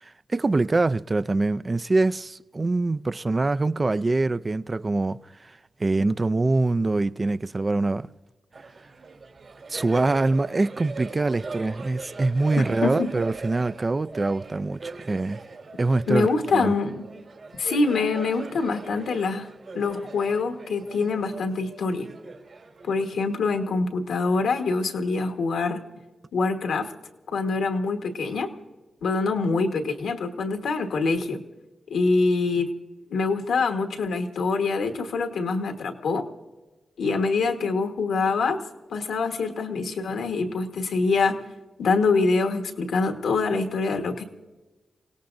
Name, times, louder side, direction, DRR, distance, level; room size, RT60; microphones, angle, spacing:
voice 1, 0.3-5.5 5.8-8.1 9.7-15.4 15.8-16.7, right 2 dB, 35° right, 0.4 m, -24 dB
Laughter, 8.5-23.5, right 4 dB, 60° right, 3.0 m, -41 dB
voice 2, 12.6-13.1 16.1-17.0 17.6-19.5 19.7-22.1 22.8-25.8 26.3-26.9 27.3-28.5 29.0-31.4 31.9-32.7 33.1-36.3 37.0-38.6 38.9-41.4 41.8-44.2, left 4 dB, 85° left, 1.4 m, -25 dB
28.5 x 17.5 x 2.6 m
cardioid pair, 70°, 0 cm